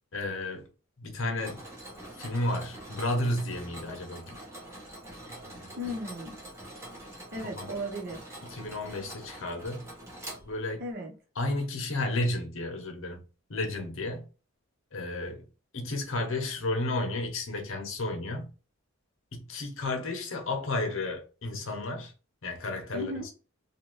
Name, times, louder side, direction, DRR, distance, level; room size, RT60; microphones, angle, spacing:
voice 1, 0.1-0.7 1.0-1.6 2.2-4.3 5.5-5.7 7.4-7.7 8.5-9.8 10.4-10.8 11.4-13.2 13.5-14.2 14.9-15.4 15.7-18.5 19.3-22.1 22.4-23.3, left 2 dB, 70° left, 0.9 m, -32 dB
Mechanisms, 1.4-10.9, right 1 dB, 15° right, 0.8 m, -45 dB
voice 2, 5.8-6.3 7.3-8.2 10.8-11.1 22.9-23.3, equal, 45° right, 0.9 m, -35 dB
2.8 x 2.5 x 3.0 m
head